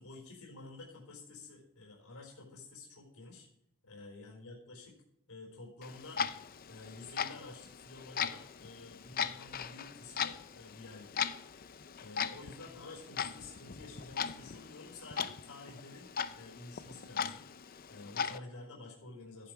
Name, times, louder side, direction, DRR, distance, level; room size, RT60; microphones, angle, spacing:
voice 1, 0.0-3.5 3.8-5.0 5.3-6.2 6.7-11.3 12.0-16.1 16.4-17.6 17.9-19.5, left 2 dB, 80° left, -1 dB, 4.4 m, -50 dB
Clock, 5.8-18.4, left 7 dB, 40° left, 0.5 m, -39 dB
14.5 x 10.5 x 4.7 m, 0.76 s
head